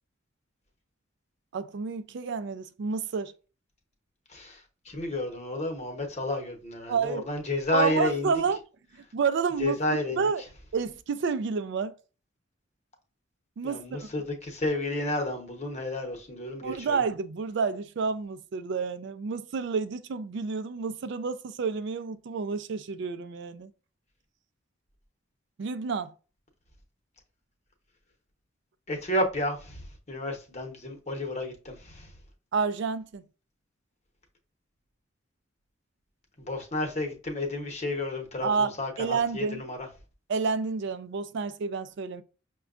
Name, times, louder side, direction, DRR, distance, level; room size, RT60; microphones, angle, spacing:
voice 1, 1.5-3.3 6.9-7.2 7.7-8.6 9.1-10.4 10.7-11.9 13.6-14.1 16.6-23.7 25.6-26.1 32.5-33.2 38.4-39.6 40.3-42.2, right 5 dB, 65° right, 0.4 m, -29 dB
voice 2, 4.3-8.3 9.6-10.3 13.6-17.0 28.9-32.1 36.4-39.9, left 1 dB, 35° left, 0.9 m, -31 dB
6.1 x 2.2 x 2.4 m
head